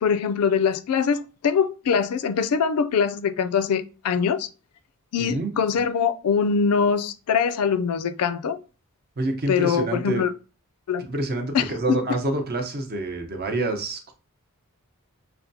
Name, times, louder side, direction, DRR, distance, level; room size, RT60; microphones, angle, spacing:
voice 1, 0.0-4.5 5.1-8.6 9.5-10.3 10.9-11.0 11.5-12.0, left 6 dB, 80° left, 0.4 m, -23 dB
voice 2, 5.2-5.5 9.2-10.2 11.0-14.1, right 2 dB, 45° right, 0.7 m, -27 dB
5.7 x 2.2 x 2.7 m
head